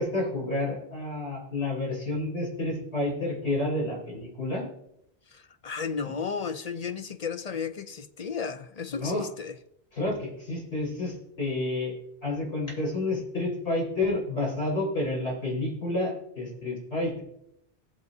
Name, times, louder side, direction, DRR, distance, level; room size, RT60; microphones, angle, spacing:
voice 1, 0.0-4.7 8.9-9.2 9.9-11.9 12.2-17.2, left 2 dB, 85° left, 4.7 m, -30 dB
voice 2, 5.3-9.6, left 6 dB, 45° left, 0.5 m, -34 dB
19.0 x 7.8 x 2.7 m
omnidirectional pair, 1.1 m